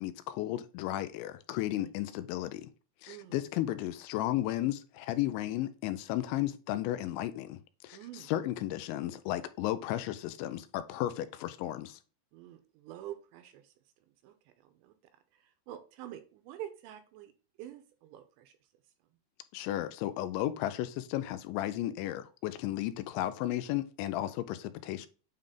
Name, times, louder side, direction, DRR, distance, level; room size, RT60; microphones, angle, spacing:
voice 1, 0.0-2.7 3.0-12.0 19.5-25.1, left 14 dB, 80° left, 2.8 m, -34 dB
voice 2, 7.9-8.3 12.3-13.7 14.2-15.0 15.3-17.3 17.6-18.5 23.3-23.4, right 12 dB, 85° right, 2.9 m, -47 dB
8.9 x 3.6 x 3.8 m
omnidirectional pair, 5.4 m